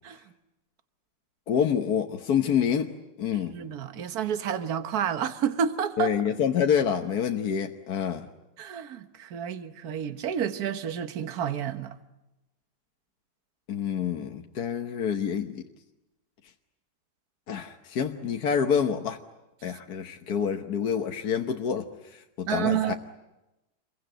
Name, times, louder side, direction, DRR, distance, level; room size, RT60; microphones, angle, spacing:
voice 1, 1.5-2.9 3.2-3.6 6.0-8.3 13.7-15.6 17.5-19.2 19.6-21.9 22.4-22.9, left 7 dB, 60° left, 1.5 m, -27 dB
voice 2, 3.5-6.1 8.6-11.9 22.5-22.9, right 8 dB, 55° right, 1.6 m, -30 dB
28.5 x 22.5 x 9.0 m
omnidirectional pair, 2.0 m